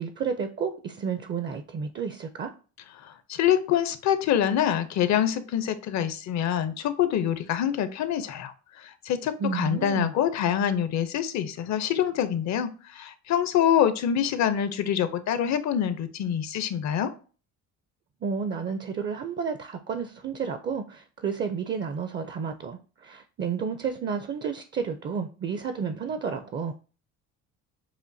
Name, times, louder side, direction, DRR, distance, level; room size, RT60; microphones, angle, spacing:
voice 1, 0.0-2.5 9.4-10.1 18.2-26.7, right 6 dB, 35° right, 9 dB, 0.5 m, -31 dB
voice 2, 3.0-17.1, left 9 dB, 60° left, 11 dB, 0.7 m, -25 dB
7.2 x 2.5 x 2.6 m, 0.36 s
cardioid pair, 110°, 31 cm